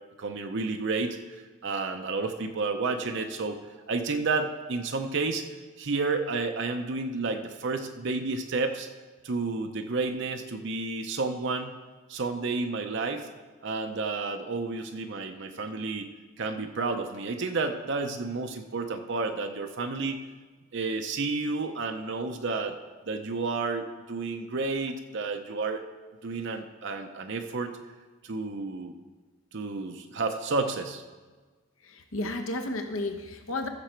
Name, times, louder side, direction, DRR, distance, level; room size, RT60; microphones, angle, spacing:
voice 1, 0.2-3.6 3.9-5.5 5.8-8.9 9.2-11.8 12.1-13.3 13.6-16.1 16.4-20.2 20.7-22.8 23.1-25.9 26.2-27.7 28.2-28.9 29.5-31.0, right 3 dB, 55° right, 5 dB, 0.6 m, -31 dB
voice 2, 31.9-33.7, left 2 dB, 65° left, 6 dB, 1.0 m, -32 dB
14.5 x 6.9 x 4.5 m, 1.3 s
head